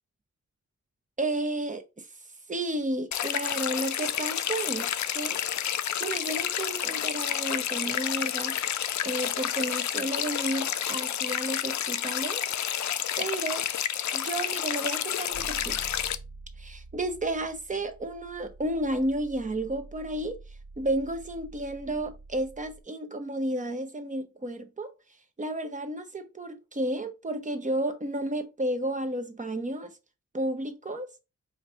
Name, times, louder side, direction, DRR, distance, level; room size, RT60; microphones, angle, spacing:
voice 1, 1.2-2.1 2.5-8.6 9.0-12.4 13.2-13.6 14.1-15.8 16.6-20.4 20.8-24.9 25.4-29.9 30.3-31.1, right 1 dB, 25° right, 0.7 m, -32 dB
sound 1, 3.1-16.2, left 10 dB, 70° left, 0.4 m, -30 dB
sound 2, 15.3-22.8, right 3 dB, 70° right, 1.2 m, -46 dB
4.7 x 2.6 x 4.3 m
wide cardioid pair, 140°, 30 cm